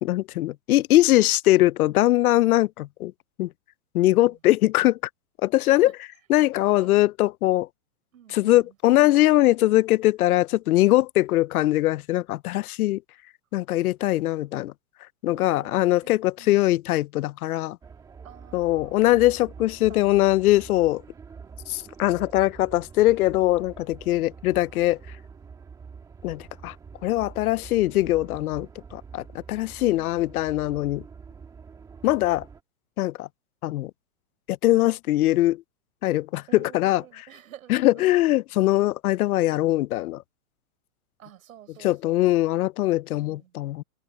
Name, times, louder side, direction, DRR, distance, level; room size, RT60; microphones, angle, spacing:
voice 1, 0.0-3.1 3.4-3.5 3.9-5.0 5.4-5.9 6.3-7.7 8.3-13.0 13.5-14.7 15.2-17.8 18.5-21.0 21.7-25.0 26.2-26.7 27.0-31.0 32.0-32.4 33.0-33.3 33.6-33.9 34.5-35.6 36.0-37.0 37.7-40.2 41.8-43.8, left 16 dB, 90° left, 0.6 m, -21 dB
voice 2, 4.0-4.4 5.6-5.9 6.7-7.1 8.1-8.7 15.3-16.1 16.4-16.6 18.2-19.0 19.6-20.2 24.0-24.3 29.8-30.1 36.5-38.2 41.2-42.3 43.1-43.7, right 11 dB, 70° right, 6.8 m, -50 dB
sound 1, 17.8-32.6, right 5 dB, 10° right, 1.6 m, -46 dB
supercardioid pair, 175°, 42 cm